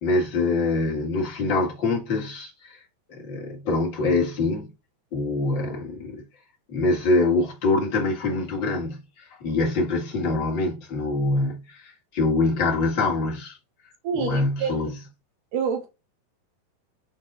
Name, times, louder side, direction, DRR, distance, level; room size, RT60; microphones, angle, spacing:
voice 1, 0.0-2.8 3.1-4.7 5.1-6.2 6.7-13.6 14.1-14.9, left 3 dB, 40° left, 2.1 m, -24 dB
voice 2, 14.0-14.7 15.5-15.9, right 6 dB, 70° right, 2.6 m, -27 dB
6.0 x 4.5 x 4.1 m
omnidirectional pair, 4.0 m